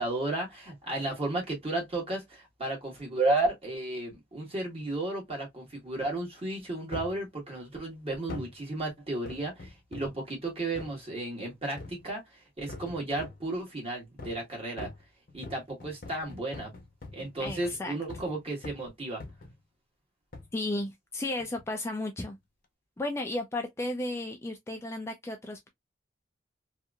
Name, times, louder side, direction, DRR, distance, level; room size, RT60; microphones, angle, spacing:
voice 1, 0.0-14.9 15.3-16.7 17.1-19.2, right 2 dB, 30° right, 1.3 m, -33 dB
sound 1, 6.9-7.2 8.3-8.6 9.3-10.2 10.8-11.0 11.8-12.1 12.7-13.5 14.2-14.5 14.8-18.4 18.6-18.9 19.2-19.6 20.3-20.6 21.4-21.7 22.3-22.4, left 2 dB, 50° left, 0.7 m, -44 dB
voice 2, 17.4-18.0 20.5-22.4 23.0-25.7, left 2 dB, 15° left, 0.3 m, -34 dB
2.8 x 2.5 x 2.2 m
head